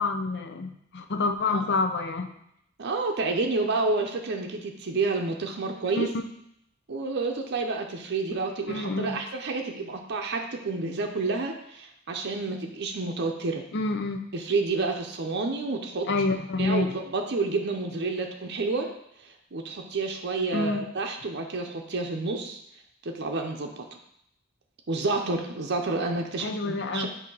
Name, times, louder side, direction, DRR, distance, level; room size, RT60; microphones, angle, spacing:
voice 1, 0.0-2.3 5.8-6.2 8.7-9.2 13.7-14.2 16.1-16.9 20.5-20.9 26.4-27.1, left 3 dB, 55° left, 7 dB, 0.6 m, -28 dB
voice 2, 2.8-6.1 6.9-13.6 14.3-16.1 16.6-18.9 19.5-22.6 23.0-23.8 24.9-27.1, right 3 dB, 55° right, 2 dB, 0.7 m, -29 dB
7.7 x 2.8 x 5.5 m, 0.74 s
head